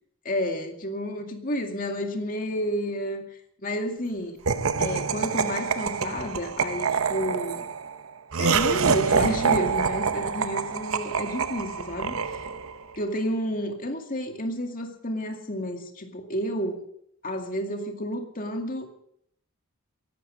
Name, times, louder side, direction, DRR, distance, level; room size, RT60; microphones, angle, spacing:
voice 1, 0.2-4.3 4.8-7.6 8.4-12.2 13.0-16.8 17.2-18.9, equal, 40° left, 4 dB, 2.2 m, -31 dB
Laughter, 4.5-12.8, right 5 dB, 70° right, 0.8 m, -26 dB
15.5 x 12.0 x 6.4 m, 0.70 s
head